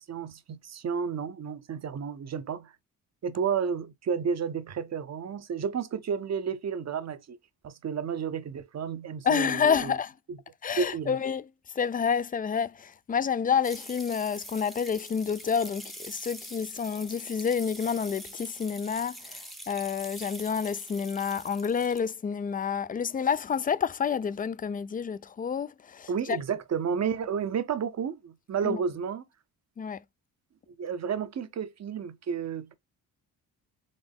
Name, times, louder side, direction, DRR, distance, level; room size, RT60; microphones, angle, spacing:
voice 1, 0.0-2.7 3.2-7.4 7.6-9.9 10.3-10.4 10.8-11.2 26.1-29.2 30.8-32.7, right 6 dB, 45° right, 0.7 m, -31 dB
voice 2, 9.2-10.1 10.6-11.5 11.7-26.4 28.6-28.8 29.8-30.0, left 6 dB, 25° left, 0.3 m, -29 dB
sound 1, 13.6-22.1, equal, ahead, 0.7 m, -44 dB
4.1 x 3.5 x 3.4 m
cardioid pair, 70°, 37 cm